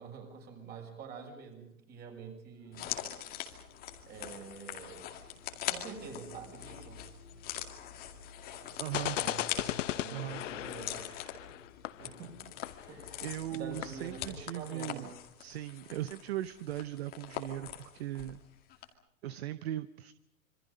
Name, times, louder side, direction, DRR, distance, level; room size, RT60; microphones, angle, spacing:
voice 1, 0.0-3.0 4.1-5.0 5.7-7.0 8.9-11.1 12.0-12.4 12.9-15.1, right 5 dB, 20° right, 3 dB, 6.3 m, -47 dB
sound 1, 2.5-14.4, left 4 dB, 85° left, 4.2 m, -56 dB
sound 2, 2.7-18.4 18.7-18.8, left 11 dB, 20° left, 2.2 m, -43 dB
voice 2, 8.8-9.2 10.1-10.4 12.7-15.1 15.4-18.4 19.2-20.1, right 13 dB, 45° right, 15 dB, 0.8 m, -39 dB
sound 3, 8.9-13.3 13.5-13.6 13.8-14.1, left 13 dB, 55° left, 0.8 m, -37 dB
27.0 x 25.5 x 5.4 m, 0.78 s
hypercardioid pair, 150°, 45 cm